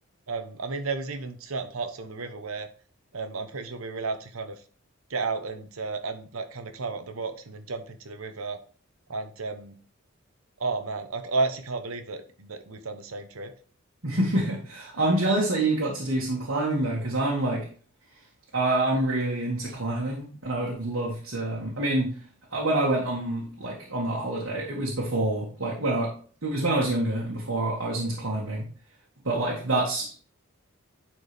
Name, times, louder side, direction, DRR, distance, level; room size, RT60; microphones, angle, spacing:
voice 1, 0.3-2.7 3.1-4.6 5.1-8.6 9.1-9.8 10.6-13.5, right 3 dB, 85° right, 9 dB, 1.0 m, -32 dB
voice 2, 14.0-17.7 18.5-22.1 22.5-26.1 26.4-28.6 29.2-30.1, right 2 dB, 70° right, -4 dB, 2.0 m, -27 dB
10.5 x 4.5 x 3.5 m, 0.42 s
head